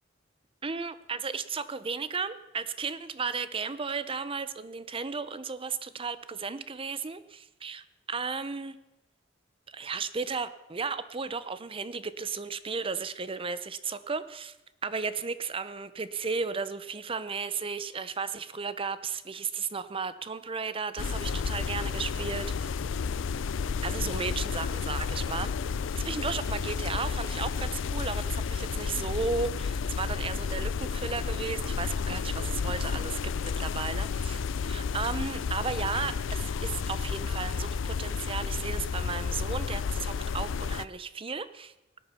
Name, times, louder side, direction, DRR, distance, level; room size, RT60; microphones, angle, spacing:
voice 1, 0.6-8.7 9.7-14.6 14.8-22.7 23.8-25.5 26.0-41.7, right 5 dB, 30° right, 14 dB, 0.7 m, -34 dB
sound 1, 21.0-40.9, left 5 dB, 85° left, 0.4 m, -31 dB
17.5 x 9.9 x 5.7 m, 0.99 s
head